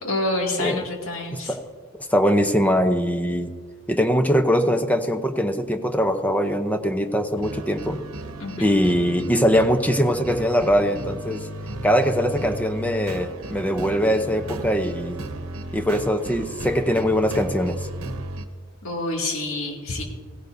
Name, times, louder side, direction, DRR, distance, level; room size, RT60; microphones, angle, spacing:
voice 1, 0.0-1.5 8.4-8.8 18.8-20.0, left 2 dB, 70° left, -1 dB, 2.3 m, -27 dB
voice 2, 0.6-0.9 1.3-1.6 2.1-3.5 3.9-8.0 8.6-11.5 11.8-15.2 15.7-17.9, equal, 5° left, 7 dB, 0.6 m, -22 dB
sound 1, 7.4-18.4, right 1 dB, 80° right, 0.9 m, -35 dB
16.5 x 16.0 x 2.6 m, 1.6 s
head